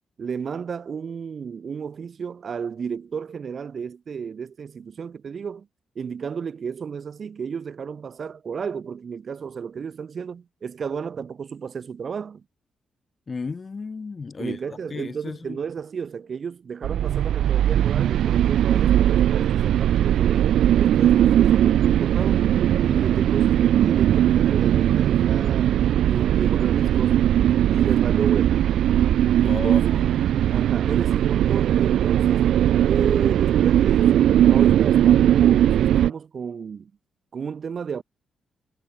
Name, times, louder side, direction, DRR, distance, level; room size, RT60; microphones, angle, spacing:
voice 1, 0.2-5.7 6.0-12.4 14.4-22.5 22.9-27.2 27.7-28.6 29.4-32.4 32.9-36.9 37.3-38.0, right 6 dB, 45° right, 7.1 m, -32 dB
voice 2, 13.3-15.6 29.4-30.1, left 4 dB, 30° left, 1.6 m, -34 dB
sound 1, 16.8-36.1, right 11 dB, 85° right, 1.1 m, -19 dB
cardioid pair, 120°, 0 cm